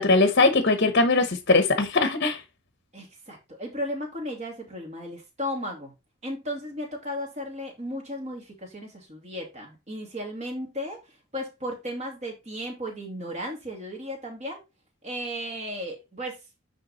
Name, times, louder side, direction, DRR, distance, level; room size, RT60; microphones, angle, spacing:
voice 1, 0.0-2.4, left 3 dB, 50° left, 1.0 m, -20 dB
voice 2, 2.9-5.9 6.2-11.0 11.3-14.6 15.0-16.4, equal, 35° right, 2.5 m, -35 dB
9.9 x 3.6 x 4.1 m
head